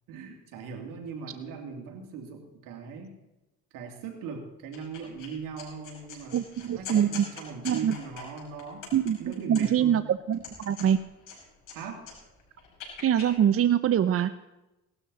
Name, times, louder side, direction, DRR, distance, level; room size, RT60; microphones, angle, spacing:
voice 1, 0.1-3.2 3.7-8.9 9.2-10.0 11.7-12.0, right 5 dB, 85° right, 2 dB, 2.8 m, -40 dB
sound 1, 4.7-5.3 5.6-9.9 10.3-11.8 12.0-13.3, left 6 dB, 70° left, 5.6 m, -43 dB
voice 2, 6.3-7.2 7.6-7.9 8.9-11.0 13.0-14.3, right 9 dB, 45° right, 13 dB, 0.7 m, -24 dB
18.0 x 12.5 x 4.1 m, 0.97 s
supercardioid pair, 80°, 32 cm